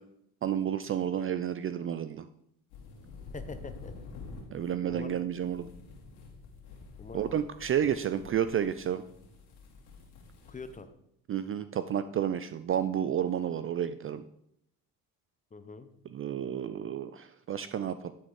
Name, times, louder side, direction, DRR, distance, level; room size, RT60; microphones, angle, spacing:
voice 1, 0.4-2.3 4.5-5.7 7.1-9.0 11.3-14.2 16.1-18.1, right 9 dB, 35° right, 12 dB, 0.4 m, -31 dB
sound 1, 2.7-10.8, left 4 dB, 90° left, 2.6 m, -48 dB
voice 2, 3.3-3.9 4.9-5.2 7.0-7.3 10.5-10.9 15.5-15.9, left 4 dB, 20° left, 10 dB, 0.7 m, -43 dB
11.0 x 4.3 x 4.8 m, 0.74 s
cardioid pair, 95°, 39 cm